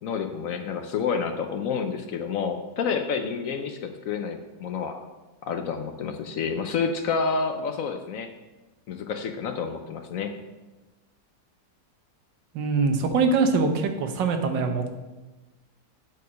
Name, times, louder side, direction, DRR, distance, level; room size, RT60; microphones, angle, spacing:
voice 1, 0.0-5.0 5.4-8.3 8.9-10.3, left 5 dB, 65° left, 6 dB, 0.9 m, -29 dB
voice 2, 12.5-14.9, right 4 dB, 85° right, 6 dB, 1.6 m, -23 dB
8.3 x 4.5 x 6.2 m, 1.1 s
omnidirectional pair, 1.9 m